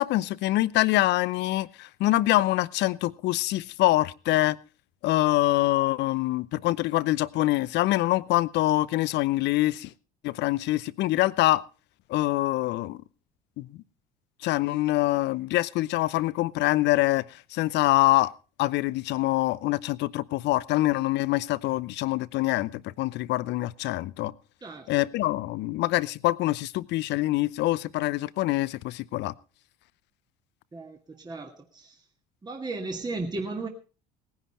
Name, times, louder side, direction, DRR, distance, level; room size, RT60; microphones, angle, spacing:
voice 1, 0.0-4.6 5.0-9.9 10.2-11.6 12.1-13.0 13.6-13.7 14.4-17.2 17.5-18.3 18.6-24.3 24.9-29.3, left 17 dB, 55° left, 0.7 m, -25 dB
voice 2, 24.6-24.9 30.7-32.0 32.4-33.7, right 3 dB, 20° right, 1.8 m, -35 dB
18.0 x 10.5 x 4.3 m
hypercardioid pair, 70°, 21 cm